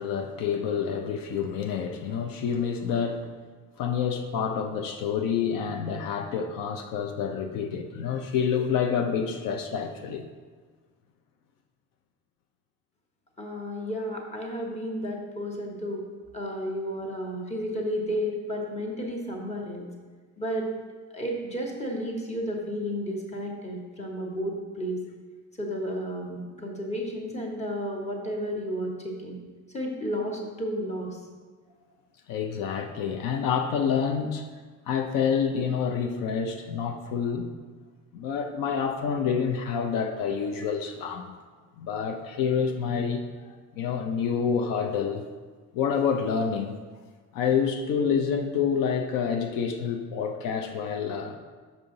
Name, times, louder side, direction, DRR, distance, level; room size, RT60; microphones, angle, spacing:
voice 1, 0.0-3.3 3.8-10.3 32.3-34.5 34.9-37.5 38.1-41.3 41.8-43.2 43.7-45.2 45.7-46.7 47.3-51.4, left 7 dB, 80° left, 5 dB, 0.6 m, -28 dB
voice 2, 13.4-16.0 16.3-19.9 20.4-20.7 21.1-25.0 25.6-29.4 29.7-31.2, equal, 20° left, -1 dB, 1.2 m, -32 dB
6.2 x 5.4 x 3.8 m, 1.5 s
cardioid pair, 120°, 33 cm